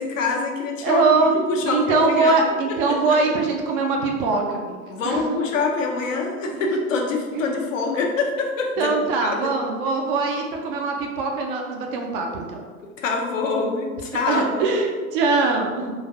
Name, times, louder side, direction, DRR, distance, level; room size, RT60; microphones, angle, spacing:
voice 1, 0.0-2.4 2.9-3.0 4.9-8.9 9.2-9.5 13.0-14.6, left 3 dB, 60° left, 1 dB, 0.7 m, -25 dB
voice 2, 0.8-1.3 1.6-4.8 5.0-5.4 6.5-6.6 7.3-7.4 8.8-12.6 14.3-15.9, right 3 dB, 40° right, 1 dB, 0.5 m, -22 dB
3.9 x 2.5 x 2.6 m, 1.5 s
figure-of-eight pair, 85°, 43 cm